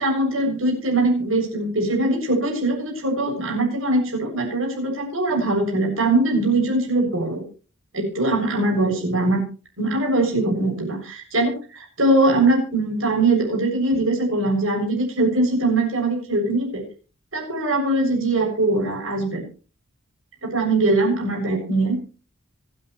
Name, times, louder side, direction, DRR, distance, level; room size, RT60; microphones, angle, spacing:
voice 1, 0.0-7.4 7.9-9.4 9.8-16.8 17.3-19.4 20.4-22.0, right 2 dB, 70° right, 1 dB, 7.1 m, -21 dB
25.5 x 9.5 x 3.2 m, 0.36 s
head